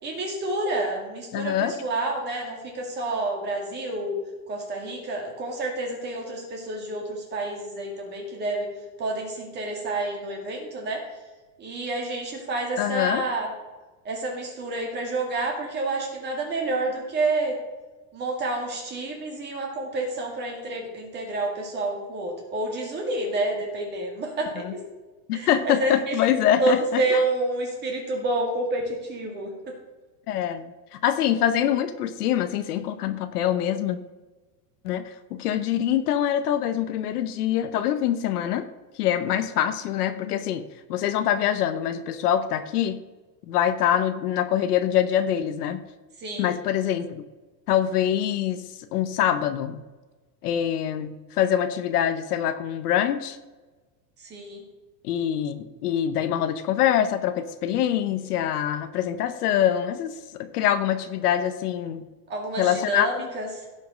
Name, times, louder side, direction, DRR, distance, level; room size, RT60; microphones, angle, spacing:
voice 1, 0.0-4.2 4.5-8.7 9.0-11.0 11.6-13.5 14.0-17.5 18.1-24.8 25.3-26.2 26.6-29.5 46.2-46.5 54.3-54.6 62.3-63.6, right 2 dB, 20° right, 0 dB, 2.3 m, -29 dB
voice 2, 1.3-1.8 12.8-13.2 24.6-24.8 25.3-27.2 30.3-34.0 34.8-38.7 38.9-40.6 40.9-43.0 43.5-45.9 46.4-47.2 47.7-49.8 50.4-53.4 55.0-62.0 62.6-63.3, left 10 dB, 65° left, 10 dB, 1.0 m, -24 dB
16.5 x 5.7 x 5.1 m, 1.2 s
supercardioid pair, 170°, 50 cm